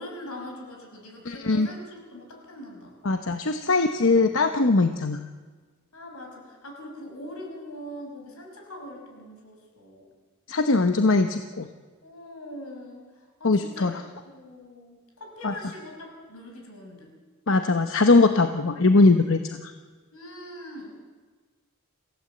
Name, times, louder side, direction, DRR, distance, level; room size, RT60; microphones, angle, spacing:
voice 1, 0.0-3.0 3.6-4.0 5.9-10.1 12.0-13.1 13.4-17.1 20.1-20.9, left 1 dB, 90° left, 2 dB, 5.7 m, -42 dB
voice 2, 1.2-1.7 3.0-5.3 10.5-11.7 13.4-13.9 15.4-15.5 17.5-19.7, left 3 dB, 65° left, 7 dB, 0.9 m, -21 dB
27.5 x 16.0 x 7.9 m, 1.4 s
head